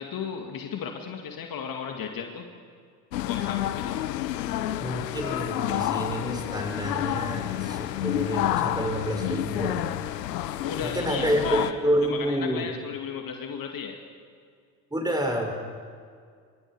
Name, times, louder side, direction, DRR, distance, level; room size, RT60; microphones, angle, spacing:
voice 1, 0.0-2.5 3.3-4.0 10.6-11.8 12.0-14.0, left 7 dB, 45° left, 3 dB, 2.1 m, -35 dB
sound 1, 3.1-11.7, left 12 dB, 80° left, 0.9 m, -29 dB
voice 2, 4.8-9.8 10.8-12.7 14.9-15.5, equal, 10° right, 2 dB, 5.5 m, -28 dB
25.5 x 24.0 x 4.8 m, 2.1 s
hypercardioid pair, 65°, 48 cm